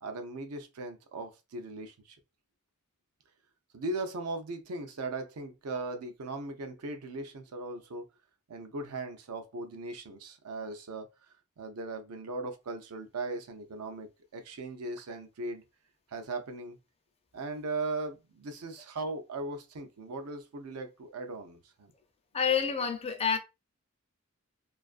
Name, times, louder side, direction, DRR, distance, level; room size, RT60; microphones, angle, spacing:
voice 1, 0.0-2.2 3.7-8.0 8.5-11.3 11.6-15.6 16.1-16.8 17.3-21.9, right 2 dB, 80° right, 0.5 m, -38 dB
voice 2, 22.3-23.4, left 6 dB, 25° left, 0.4 m, -28 dB
2.5 x 2.4 x 2.4 m
head